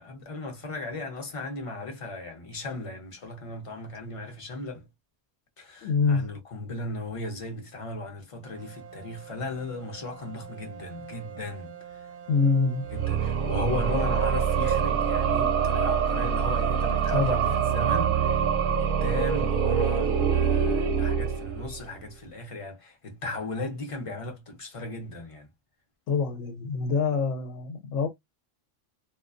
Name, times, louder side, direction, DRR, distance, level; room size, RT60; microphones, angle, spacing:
voice 1, 0.0-4.9 5.6-12.1 12.9-25.5, left 2 dB, 35° left, 0.6 m, -36 dB
voice 2, 5.8-6.3 12.3-12.8 17.1-17.6 26.1-28.1, left 4 dB, 85° left, 1.0 m, -25 dB
sound 1, 8.4-17.6, right 9 dB, 80° right, 0.9 m, -42 dB
sound 2, 12.9-21.9, right 7 dB, 55° right, 0.6 m, -25 dB
2.3 x 2.3 x 2.3 m
omnidirectional pair, 1.3 m